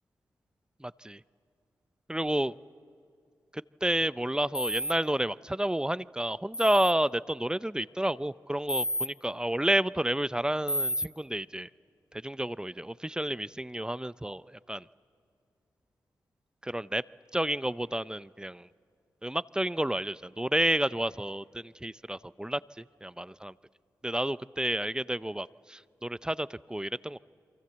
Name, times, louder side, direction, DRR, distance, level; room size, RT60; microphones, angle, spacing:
voice 1, 0.8-1.2 2.1-2.6 3.5-11.7 12.2-14.8 16.6-17.0 17.3-18.7 19.2-23.5 24.0-27.2, right 1 dB, 10° right, 18 dB, 0.6 m, -30 dB
sound 1, 4.5-4.9 6.5-6.9 8.7-9.1 10.7-11.1, left 1 dB, 40° left, 1.3 m, -30 dB
28.0 x 23.5 x 8.0 m, 2.3 s
supercardioid pair, 40°, 7 cm